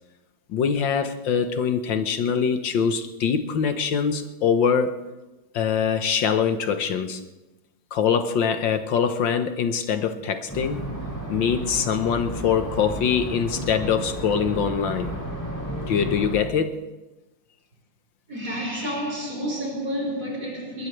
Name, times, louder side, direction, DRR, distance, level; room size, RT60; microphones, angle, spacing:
voice 1, 0.5-5.0 5.5-7.2 7.9-10.8 11.3-15.1 15.9-16.7, left 7 dB, 80° left, 1.9 m, -23 dB
sound 1, 10.5-16.4, right 1 dB, 10° left, 3.9 m, -33 dB
voice 2, 18.3-20.9, equal, 55° right, 5.5 m, -30 dB
21.0 x 20.0 x 3.3 m
omnidirectional pair, 2.0 m